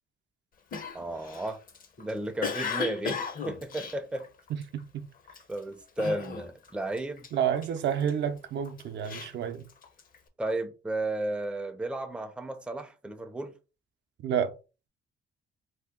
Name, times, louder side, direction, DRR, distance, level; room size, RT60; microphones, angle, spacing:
Cough, 0.7-4.8 5.3-5.6 6.0-6.7 6.9-8.1 8.6-10.2, left 5 dB, 45° left, 0.6 m, -35 dB
voice 1, 0.9-1.6 2.0-4.3 5.5-7.3 10.4-13.5, right 2 dB, 5° right, 0.4 m, -33 dB
voice 2, 7.3-9.7 14.2-14.5, right 8 dB, 65° right, 0.5 m, -29 dB
2.8 x 2.2 x 3.6 m
cardioid pair, 90°, 20 cm